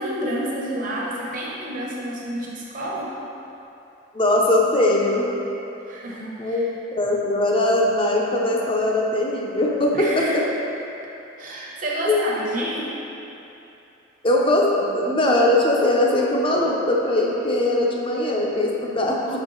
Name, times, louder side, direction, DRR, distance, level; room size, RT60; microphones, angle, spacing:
voice 1, 0.0-3.2 5.8-6.7 9.9-10.4 11.4-12.9, right 1 dB, 45° right, -4 dB, 1.1 m, -29 dB
voice 2, 4.1-5.3 6.4-10.4 12.1-12.2 14.2-19.4, left 1 dB, 25° left, -2 dB, 0.7 m, -21 dB
6.9 x 4.4 x 3.9 m, 2.9 s
head